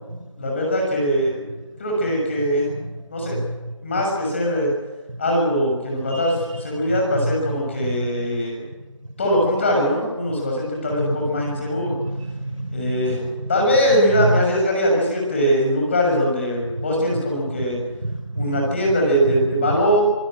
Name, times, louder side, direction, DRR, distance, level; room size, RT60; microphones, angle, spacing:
voice 1, 0.4-1.4 1.8-2.7 3.1-3.4 3.8-4.7 5.2-8.6 9.2-12.0 12.7-13.2 13.5-17.8 18.3-20.0, equal, 25° left, 0 dB, 6.6 m, -21 dB
voice 2, 6.1-6.6 6.9-7.3 7.8-8.1 10.9-13.0 13.3-13.7 14.2-14.3 17.5-17.7 18.0-18.9 19.2-19.8, right 1 dB, 85° right, 8 dB, 5.2 m, -28 dB
25.0 x 16.5 x 9.0 m, 1.2 s
figure-of-eight pair, 170°, 16 cm